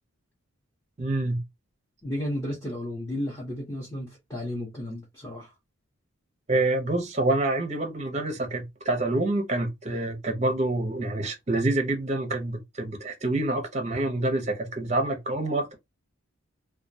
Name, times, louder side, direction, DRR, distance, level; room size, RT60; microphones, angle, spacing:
voice 1, 1.0-1.4 6.5-15.7, right 2 dB, 30° right, 0.6 m, -27 dB
voice 2, 2.0-5.5, left 1 dB, 15° left, 0.7 m, -33 dB
2.2 x 2.1 x 2.6 m
head